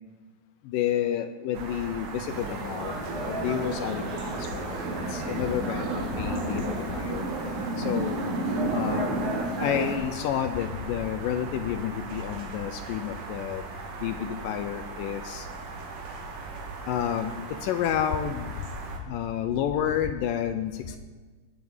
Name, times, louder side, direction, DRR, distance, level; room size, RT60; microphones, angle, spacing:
voice 1, 0.6-2.9 3.2-4.8 5.1-7.2 7.8-8.2 8.7-13.6 14.0-15.5 16.9-17.4 17.6-18.6 19.1-21.0, left 10 dB, 80° left, 8 dB, 2.2 m, -30 dB
sound 1, 1.5-19.0, right 3 dB, 60° right, 2.3 m, -39 dB
sound 2, 2.3-10.0, right 2 dB, 85° right, 3.9 m, -31 dB
20.0 x 8.0 x 3.7 m, 1.3 s
omnidirectional pair, 4.0 m